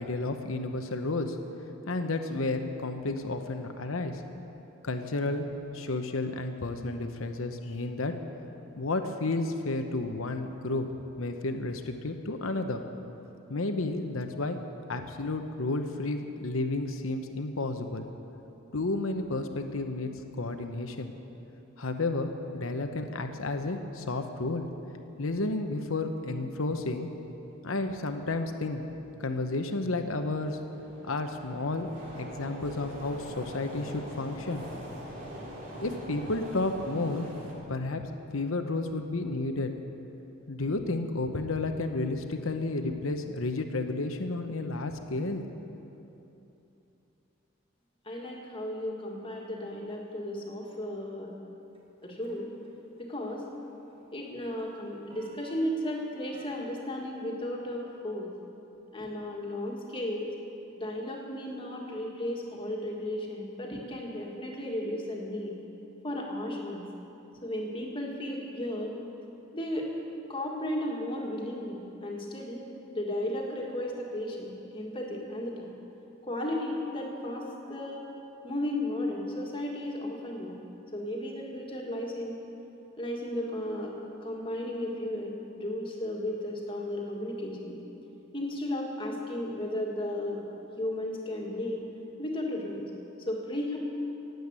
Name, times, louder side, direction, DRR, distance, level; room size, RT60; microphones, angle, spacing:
voice 1, 0.0-1.4 1.9-4.2 4.8-5.5 5.7-8.1 8.8-10.9 11.2-12.8 13.5-14.6 14.9-18.1 18.7-21.1 21.8-24.7 25.2-27.1 27.6-28.8 29.2-30.6 31.0-31.9 32.2-34.6 35.8-37.3 37.7-38.0 38.3-39.7 40.5-45.4, left 2 dB, 85° left, 6 dB, 1.0 m, -31 dB
sound 1, 28.9-29.0 29.6-37.5, equal, 40° right, 2.7 m, -43 dB
voice 2, 48.0-51.4 52.0-52.5 53.0-53.5 54.1-58.3 58.9-60.3 60.8-65.6 66.0-66.9 67.4-68.9 69.5-69.9 70.3-75.7 76.2-78.1 78.4-80.6 80.9-82.4 83.0-84.0 84.2-87.8 88.3-90.4 90.8-91.8 92.2-92.9 93.2-93.8, left 1 dB, 25° left, -1 dB, 1.9 m, -34 dB
sound 2, 51.7-52.7 53.0-53.3 53.6-56.6, left 1 dB, 25° right, 1.5 m, -55 dB
18.5 x 8.1 x 8.2 m, 3.0 s
head